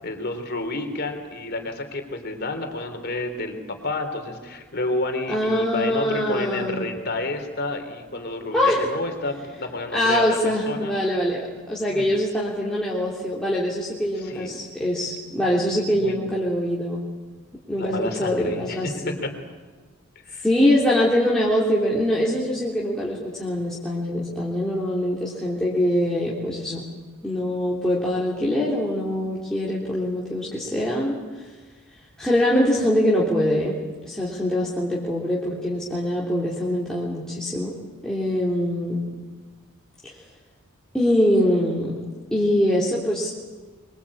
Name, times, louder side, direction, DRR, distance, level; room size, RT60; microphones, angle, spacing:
voice 1, 0.0-10.9 11.9-12.1 14.2-14.5 15.4-15.6 16.0-16.2 17.7-19.3 20.2-20.4, left 2 dB, 50° left, 6 dB, 3.4 m, -30 dB
voice 2, 5.3-6.9 8.5-8.9 9.9-17.0 17.7-19.2 20.4-26.8 27.2-31.2 32.2-33.8 34.1-37.7 38.0-39.1 40.0-40.2 40.9-42.0 42.3-43.3, left 1 dB, 5° left, -7 dB, 3.3 m, -23 dB
25.0 x 23.5 x 8.6 m, 1.3 s
head